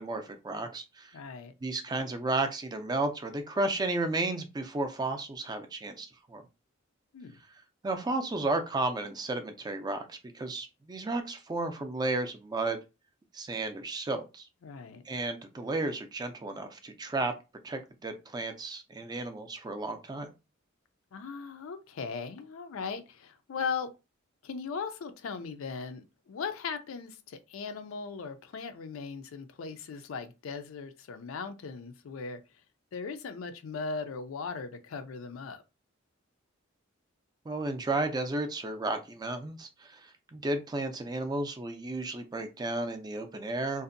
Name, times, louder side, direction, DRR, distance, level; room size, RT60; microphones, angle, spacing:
voice 1, 0.0-1.1 1.6-6.4 7.8-12.8 13.3-14.4 15.0-17.3 17.6-20.3 37.5-43.8, right 2 dB, 20° right, 0.4 m, -33 dB
voice 2, 1.1-1.5 7.1-7.4 14.6-15.0 21.1-23.9 24.4-32.4 32.9-35.6, left 5 dB, 85° left, 0.4 m, -38 dB
2.6 x 2.0 x 2.5 m
head